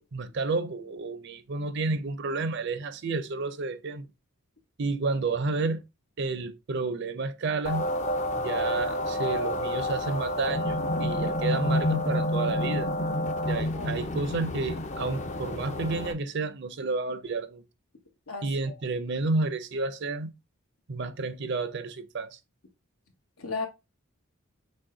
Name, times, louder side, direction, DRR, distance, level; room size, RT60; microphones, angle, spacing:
voice 1, 0.0-4.1 4.8-5.8 6.2-7.9 8.4-12.9 13.5-17.6 18.4-20.3 20.9-22.4, right 3 dB, 55° right, 0.5 m, -31 dB
sound 1, 7.6-16.1, left 1 dB, 30° left, 0.5 m, -29 dB
voice 2, 13.5-14.0 18.3-18.7 23.4-23.7, left 4 dB, 80° left, 1.2 m, -36 dB
6.4 x 2.2 x 3.7 m
head